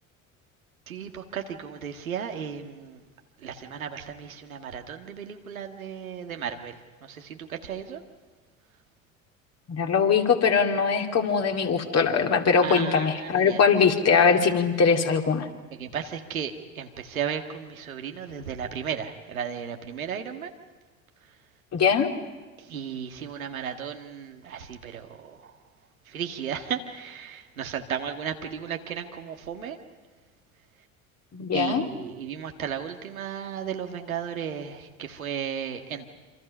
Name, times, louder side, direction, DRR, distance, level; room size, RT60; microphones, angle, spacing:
voice 1, 0.9-3.0 3.4-8.0 12.6-13.6 15.7-20.5 22.6-25.5 26.1-29.8 31.5-36.1, right 8 dB, 80° right, 4 dB, 1.8 m, -35 dB
voice 2, 9.7-15.5 21.7-22.1 31.3-31.8, left 6 dB, 40° left, 4 dB, 2.7 m, -21 dB
27.0 x 26.0 x 5.6 m, 1.3 s
figure-of-eight pair, 65°, 41 cm